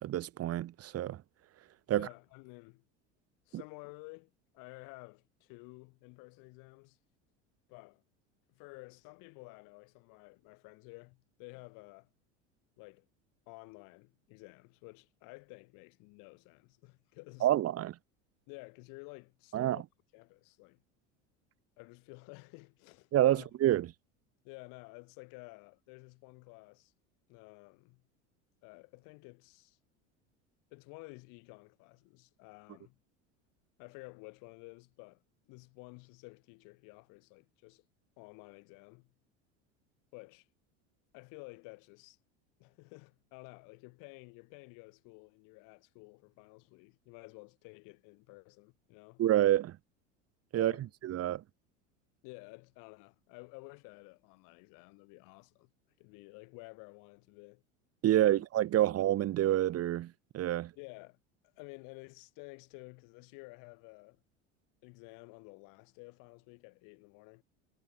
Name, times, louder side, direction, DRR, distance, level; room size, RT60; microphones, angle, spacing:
voice 1, 0.0-1.2 1.9-2.1 17.4-17.9 19.5-19.8 23.1-23.9 49.2-49.7 50.5-50.7 51.0-51.4 58.0-60.7, right 13 dB, 45° right, 1.7 m, -28 dB
voice 2, 1.9-2.8 3.5-7.0 7.7-8.0 8.5-12.1 12.8-13.1 13.5-17.5 18.5-19.8 20.1-20.8 21.8-23.5 24.4-26.9 27.3-28.0 28.6-29.8 30.7-33.0 33.8-37.8 38.2-39.1 40.1-40.5 41.1-42.2 42.6-49.2 50.5-50.9 52.2-55.7 56.0-57.6 58.1-58.4 58.8-59.0 60.8-61.2 61.4-64.2 64.8-67.4, left 31 dB, 65° left, 7.9 m, -52 dB
supercardioid pair, 105°, 34 cm